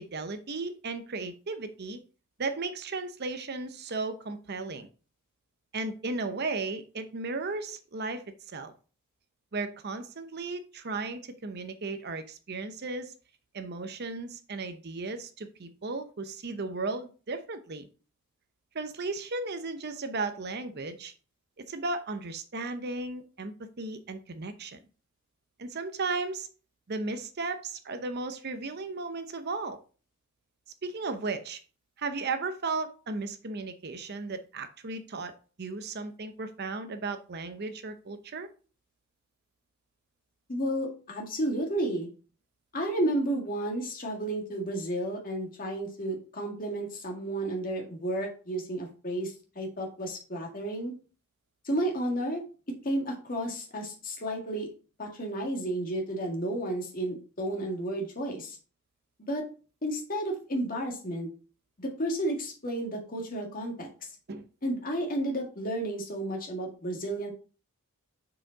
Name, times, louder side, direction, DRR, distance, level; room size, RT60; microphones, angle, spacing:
voice 1, 0.0-2.0 2.4-4.9 5.7-8.7 9.5-13.1 13.5-17.9 18.7-21.1 21.7-24.8 25.6-26.5 26.9-29.8 30.8-31.6 32.0-35.3 35.6-38.5 64.3-64.4, right 3 dB, 45° right, 0.7 m, -35 dB
voice 2, 40.5-42.1 42.7-50.9 51.6-52.4 52.8-54.7 55.0-58.6 59.3-59.4 59.8-61.3 61.8-64.1 64.6-67.3, right 1 dB, 40° left, 1.8 m, -32 dB
6.1 x 4.9 x 3.9 m
head